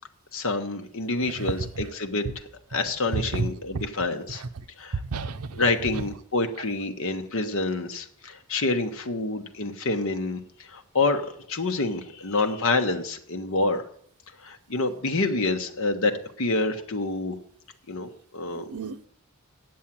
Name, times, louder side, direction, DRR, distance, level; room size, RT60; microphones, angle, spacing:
voice 1, 0.3-2.2 2.7-4.4 4.8-5.0 5.5-10.4 10.7-13.8 14.4-16.1 16.4-17.4 17.9-18.7, left 3 dB, 65° left, 1.0 m, -27 dB
voice 2, 1.3-1.9 3.1-3.5 3.7-3.8 4.3-4.5 4.9-5.7 5.9-6.0 18.5-19.1, right 4 dB, 90° right, 0.7 m, -31 dB
8.7 x 7.4 x 7.3 m
head